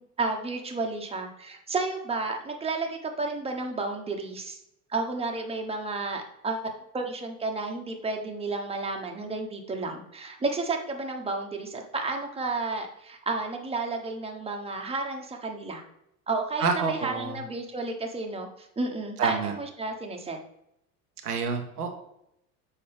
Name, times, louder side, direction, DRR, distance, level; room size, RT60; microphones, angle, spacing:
voice 1, 0.0-4.6 4.9-6.7 6.9-15.8 16.3-20.4, right 3 dB, 15° right, 2 dB, 1.2 m, -32 dB
voice 2, 16.6-17.4 19.2-19.5 21.2-21.9, right 5 dB, 85° right, 3 dB, 1.0 m, -28 dB
6.9 x 4.7 x 3.4 m, 0.78 s
figure-of-eight pair, 75°, 44 cm